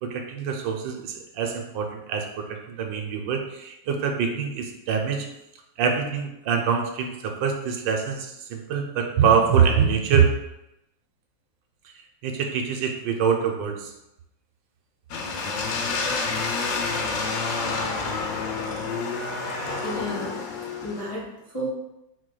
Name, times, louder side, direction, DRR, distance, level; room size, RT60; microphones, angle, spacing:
voice 1, 0.0-5.3 5.8-10.3 12.2-13.9, right 6 dB, 80° right, 3 dB, 1.3 m, -24 dB
sound 1, 15.1-21.1, left 4 dB, 70° left, 1.1 m, -28 dB
voice 2, 19.7-20.4 20.8-21.7, equal, 25° left, -5 dB, 0.5 m, -32 dB
4.3 x 2.3 x 4.7 m, 0.87 s
omnidirectional pair, 2.0 m